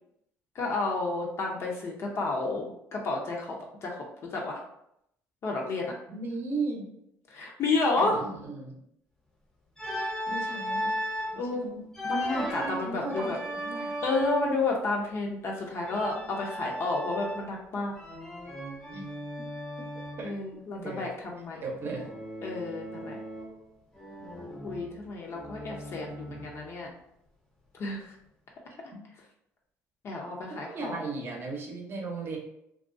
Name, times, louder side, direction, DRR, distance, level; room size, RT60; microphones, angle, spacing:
voice 1, 0.6-3.6 3.8-4.0 4.3-4.6 5.4-5.9 7.3-8.2 11.4-11.7 12.0-13.4 13.8-17.9 20.2-21.6 22.4-23.2 24.6-26.9 27.8-28.1 30.0-31.0, left 3 dB, 50° left, -1 dB, 0.5 m, -31 dB
voice 2, 6.1-6.8 8.0-8.8 10.0-10.9 11.3-11.8 12.8-13.9 18.9-19.0 19.4-19.5 20.2-21.1 21.6-22.1 26.0-26.5 30.7-32.4, right 3 dB, 40° right, 0 dB, 0.7 m, -37 dB
Organ, 9.8-11.4 11.9-14.6 15.8-17.6 18.0-20.3 21.8-23.6 23.9-26.7, equal, 5° left, 0.6 m, -36 dB
2.3 x 2.2 x 2.5 m, 0.77 s
cardioid pair, 95°, 6 cm